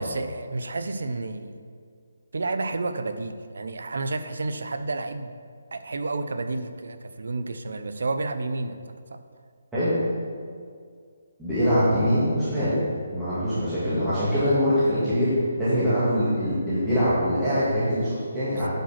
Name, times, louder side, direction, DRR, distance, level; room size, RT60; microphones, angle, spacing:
voice 1, 0.0-1.6 2.3-5.3 5.7-9.2 18.5-18.7, right 3 dB, 75° right, 9 dB, 0.7 m, -31 dB
voice 2, 11.4-12.8 13.1-18.7, equal, 5° right, -15 dB, 1.8 m, -23 dB
10.0 x 5.2 x 5.8 m, 2.1 s
hypercardioid pair, 175°, 0 cm